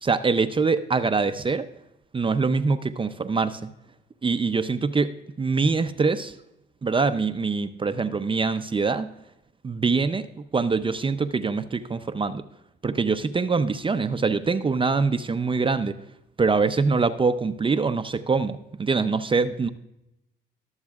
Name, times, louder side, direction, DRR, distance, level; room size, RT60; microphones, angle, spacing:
voice 1, 0.0-1.7 2.1-3.7 4.2-5.1 5.4-6.3 6.8-9.1 9.6-10.3 10.5-12.4 12.8-16.0 16.4-19.7, right 4 dB, 25° right, 10 dB, 0.6 m, -24 dB
21.5 x 7.3 x 2.4 m, 0.87 s
cardioid pair, 90°, 20 cm